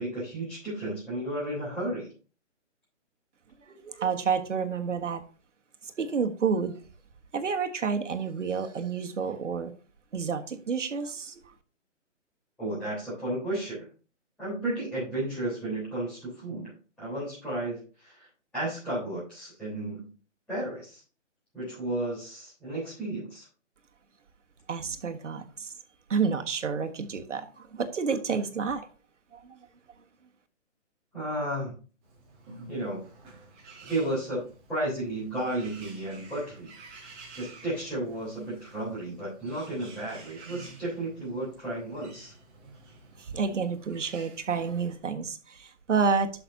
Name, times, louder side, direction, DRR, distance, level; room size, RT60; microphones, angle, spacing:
voice 1, 0.0-2.1 12.6-13.9 14.4-18.3 18.5-20.1 20.5-21.0 21.5-23.5 31.1-31.7 32.7-33.0 33.8-34.4 34.7-42.3, right 1 dB, 5° left, 3.6 m, -33 dB
voice 2, 3.6-5.2 5.8-6.8 7.3-9.7 10.1-11.5 24.7-25.7 26.1-28.9 29.3-29.6 43.2-46.3, right 5 dB, 75° right, 1.5 m, -29 dB
Bird, 32.0-45.0, right 3 dB, 15° right, 1.7 m, -51 dB
11.5 x 6.0 x 2.7 m
hypercardioid pair, 165°, 37 cm